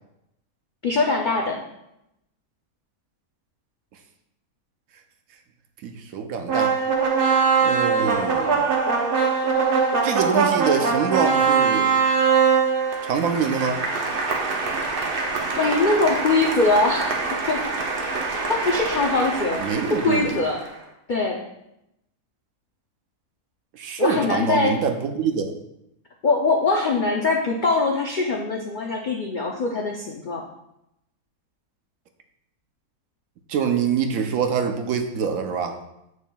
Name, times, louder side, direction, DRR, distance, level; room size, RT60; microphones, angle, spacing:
voice 1, 0.8-1.6 15.6-17.6 18.5-20.6 21.1-21.4 24.0-24.8 26.2-30.4, left 3 dB, 65° left, 1 dB, 0.4 m, -22 dB
voice 2, 5.8-6.7 7.6-8.7 10.0-11.9 13.0-13.8 19.6-20.4 23.7-25.6 33.5-35.8, right 6 dB, 70° right, 5 dB, 1.1 m, -25 dB
sound 1, 6.5-20.7, right 5 dB, 45° right, 0.9 m, -23 dB
7.1 x 6.4 x 2.3 m, 0.84 s
omnidirectional pair, 1.6 m